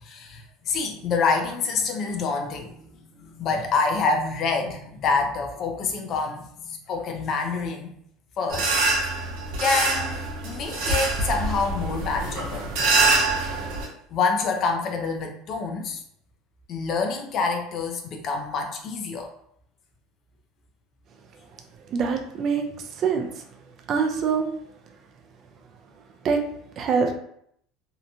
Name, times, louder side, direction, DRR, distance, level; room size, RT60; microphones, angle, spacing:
voice 1, 0.0-7.9 8.4-8.7 9.6-12.7 14.1-16.0 16.7-19.3, left 4 dB, 45° left, 4 dB, 0.5 m, -27 dB
sound 1, 8.5-13.9, right 3 dB, 70° right, 0.7 m, -25 dB
voice 2, 21.9-23.4 23.9-24.5 26.2-26.4 26.8-27.1, right 5 dB, 45° right, 4 dB, 0.4 m, -24 dB
2.8 x 2.1 x 2.6 m, 0.69 s
supercardioid pair, 125°, 0 cm